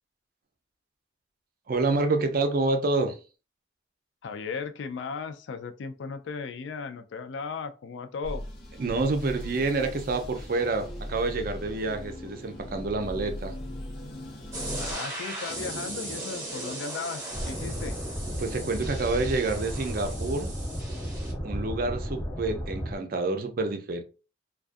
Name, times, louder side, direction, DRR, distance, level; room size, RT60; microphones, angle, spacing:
voice 1, 1.7-3.2 8.8-13.5 18.4-20.5 21.4-24.0, right 3 dB, 50° right, 0.4 m, -28 dB
voice 2, 4.2-8.4 14.8-18.0, left 5 dB, 75° left, 0.3 m, -36 dB
sound 1, 8.2-14.9, left 1 dB, 55° left, 0.7 m, -39 dB
sound 2, 14.5-21.3, right 1 dB, 15° right, 1.0 m, -37 dB
sound 3, 17.3-23.0, equal, 5° left, 0.5 m, -34 dB
2.3 x 2.2 x 2.5 m
head